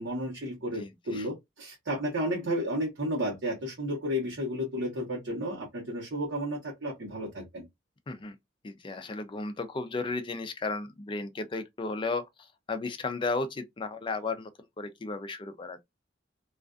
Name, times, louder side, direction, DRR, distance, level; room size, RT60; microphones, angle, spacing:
voice 1, 0.0-7.6, equal, 80° right, 0.9 m, -32 dB
voice 2, 0.8-1.3 8.1-8.4 8.6-14.5 14.8-15.8, left 3 dB, 25° left, 0.4 m, -34 dB
2.4 x 2.3 x 2.3 m
head